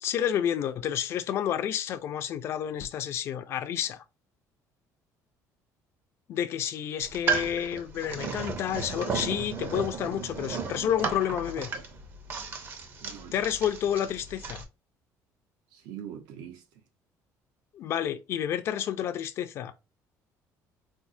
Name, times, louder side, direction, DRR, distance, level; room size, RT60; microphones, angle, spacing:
voice 1, 0.0-4.0 6.3-11.7 13.3-14.6 17.7-19.7, left 10 dB, 45° left, 0.4 m, -30 dB
sound 1, 7.0-14.6, right 5 dB, 35° right, 0.5 m, -34 dB
voice 2, 13.0-13.4 15.7-16.6, right 9 dB, 85° right, 0.8 m, -42 dB
4.3 x 2.1 x 2.5 m
cardioid pair, 180°, 6 cm